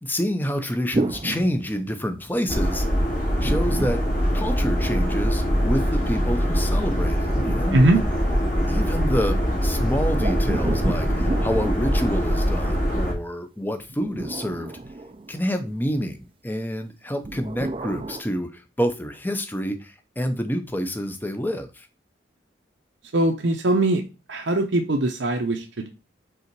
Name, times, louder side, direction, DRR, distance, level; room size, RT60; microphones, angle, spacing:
voice 1, 0.0-2.8 3.4-4.0 4.3-7.8 8.7-14.7 15.3-21.9, equal, 10° left, 0.7 m, -28 dB
sound 1, 0.9-2.4 3.4-5.0 6.6-8.7 10.2-12.7 13.8-15.7 17.2-18.2, right 2 dB, 30° right, 0.4 m, -32 dB
sound 2, 2.5-13.1, equal, 45° left, 2.4 m, -23 dB
voice 2, 7.7-8.0 23.1-24.0 24.3-25.9, right 1 dB, 85° right, 0.8 m, -21 dB
5.5 x 3.9 x 4.6 m
head